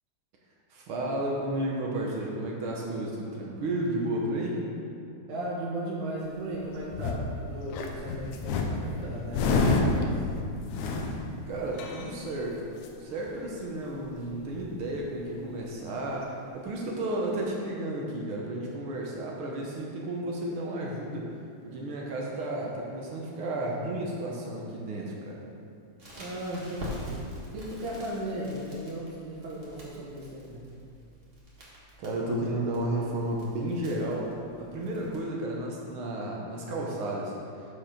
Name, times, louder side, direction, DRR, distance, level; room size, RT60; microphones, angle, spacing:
voice 1, 0.7-4.6 11.5-12.6 13.0-21.3 21.6-25.4 32.0-37.3, right 1 dB, 60° right, -3 dB, 1.5 m, -32 dB
voice 2, 5.3-10.2 26.2-27.3 27.5-30.7, right 1 dB, 85° right, -6 dB, 2.6 m, -36 dB
sound 1, 6.3-7.3 7.7-12.4 12.8-12.9 13.1-13.6 13.9-14.0 14.2-15.0 15.9-16.0, left 3 dB, 85° left, 2.2 m, -29 dB
Crackle, 26.0-35.1, equal, 25° right, 1.3 m, -45 dB
8.8 x 5.0 x 5.8 m, 2.5 s
omnidirectional pair, 3.3 m